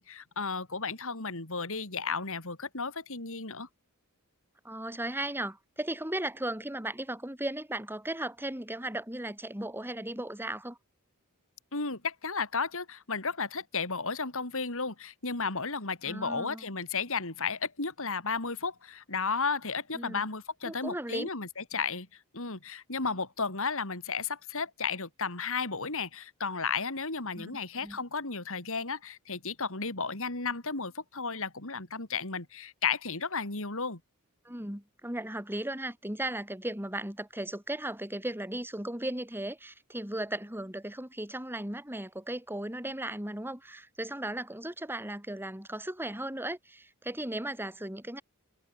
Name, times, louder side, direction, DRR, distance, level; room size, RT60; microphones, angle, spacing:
voice 1, 0.0-3.7 11.7-22.1 22.3-34.0, left 5 dB, 65° left, 4.4 m, -33 dB
voice 2, 4.6-10.8 16.0-16.7 19.9-20.2 20.6-21.3 27.3-27.5 27.8-28.0 34.5-48.2, right 1 dB, 10° right, 5.6 m, -36 dB
head